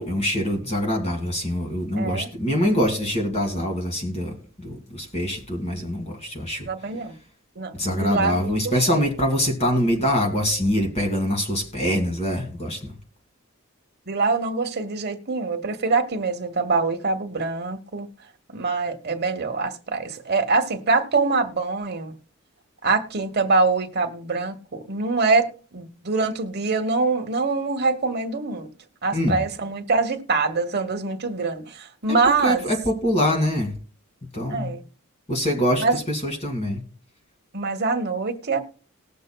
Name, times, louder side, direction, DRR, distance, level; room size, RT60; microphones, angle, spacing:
voice 1, 0.0-6.7 7.7-12.9 29.1-29.4 32.4-33.7 34.3-34.7 35.3-36.8, equal, 30° left, 2.1 m, -24 dB
voice 2, 2.0-2.3 6.7-7.1 7.6-9.0 14.1-18.1 18.5-22.1 22.8-28.7 29.0-32.6 34.5-34.8 35.8-36.0 37.5-38.6, right 3 dB, 50° right, 1.1 m, -24 dB
19.5 x 6.6 x 2.3 m
head